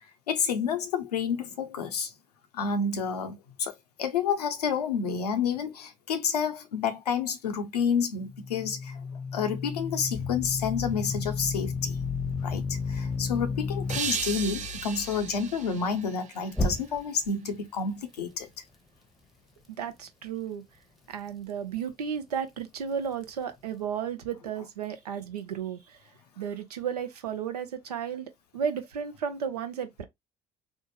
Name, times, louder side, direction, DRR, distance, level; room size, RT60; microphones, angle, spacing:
voice 1, 0.3-2.1 2.5-9.0 9.3-12.0 12.4-18.5, left 6 dB, 90° left, 0.6 m, -29 dB
sound 1, 8.2-14.0 16.5-17.3, left 4 dB, ahead, 0.8 m, -32 dB
sound 2, 10.1-16.0, left 12 dB, 45° left, 0.5 m, -42 dB
sound 3, 13.9-17.0, right 7 dB, 40° right, 0.5 m, -36 dB
voice 2, 19.8-20.6 21.1-26.0 26.4-30.0, right 7 dB, 90° right, 0.5 m, -33 dB
3.3 x 2.0 x 3.1 m
hypercardioid pair, 60°, 20 cm